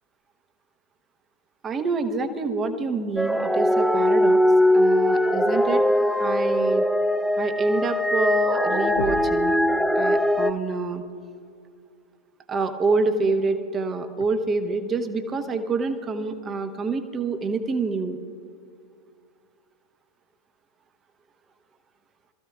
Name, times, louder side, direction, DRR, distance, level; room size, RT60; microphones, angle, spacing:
voice 1, 1.6-4.4 4.7-5.8 6.2-6.8 7.4-9.6 9.9-11.0 12.5-18.2, right 4 dB, 20° right, 7 dB, 1.1 m, -26 dB
sound 1, 3.2-10.5, left 1 dB, ahead, 0.5 m, -21 dB
sound 2, 8.4-8.6 8.9-9.5 11.2-11.3 13.2-13.3 14.2-14.3, left 2 dB, 70° left, 0.9 m, -34 dB
26.0 x 14.5 x 2.4 m, 2.3 s
figure-of-eight pair, 90°, 0 cm